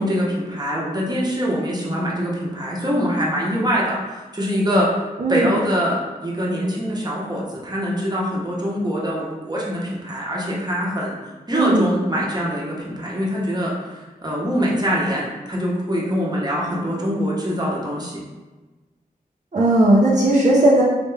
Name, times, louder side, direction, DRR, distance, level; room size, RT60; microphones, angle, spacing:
voice 1, 0.0-4.9 5.3-11.2 11.5-13.7 14.2-18.2, equal, 25° right, -4 dB, 1.0 m, -23 dB
voice 2, 11.5-11.9 19.5-20.8, right 1 dB, 50° right, -6 dB, 0.6 m, -16 dB
3.3 x 2.9 x 3.3 m, 1.2 s
cardioid pair, 50°, 16 cm